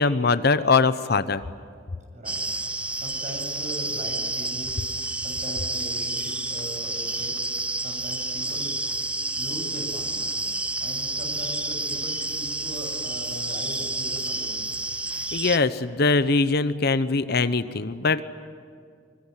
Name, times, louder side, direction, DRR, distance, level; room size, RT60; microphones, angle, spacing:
voice 1, 0.0-1.4 15.3-18.2, left 4 dB, 60° left, 13 dB, 0.8 m, -22 dB
sound 1, 2.3-15.6, right 2 dB, 5° right, 0.6 m, -30 dB
voice 2, 2.9-4.8 5.2-7.6 7.8-8.7 9.4-10.4 10.8-14.6, right 1 dB, 40° right, 2 dB, 7.5 m, -39 dB
25.0 x 24.0 x 9.8 m, 2.2 s
head